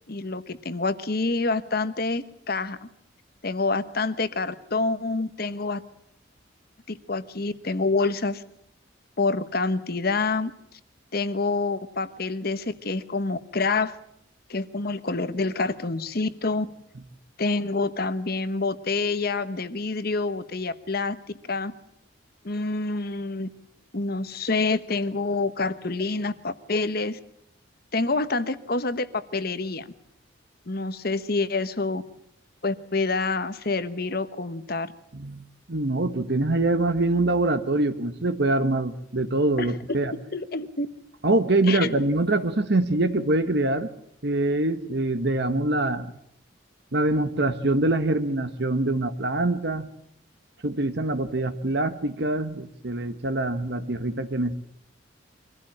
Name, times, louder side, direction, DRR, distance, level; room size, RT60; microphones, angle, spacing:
voice 1, 0.1-2.9 3.4-5.8 6.9-8.4 9.2-10.5 11.1-13.9 14.5-16.7 17.4-21.2 21.4-21.7 22.4-23.5 23.9-27.2 27.9-29.9 30.7-32.0 32.6-34.9 39.6-40.0 40.3-40.9 41.7-41.9, left 3 dB, 50° left, 12 dB, 1.1 m, -27 dB
voice 2, 35.1-40.1 41.2-43.9 44.2-46.1 46.9-49.9 50.6-54.5, right 2 dB, 60° right, 10 dB, 1.3 m, -24 dB
24.5 x 15.5 x 8.7 m, 0.76 s
head